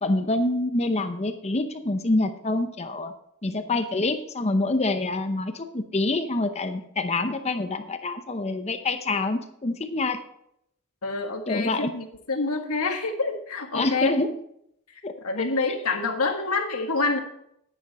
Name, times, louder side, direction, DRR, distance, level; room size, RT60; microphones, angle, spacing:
voice 1, 0.0-3.1 3.4-10.2 11.5-11.9 13.7-14.3 15.0-15.5, left 2 dB, 30° left, 8 dB, 0.7 m, -26 dB
voice 2, 11.0-14.2 14.9-17.2, left 3 dB, 80° left, 4 dB, 1.7 m, -27 dB
10.5 x 9.9 x 4.2 m, 0.74 s
head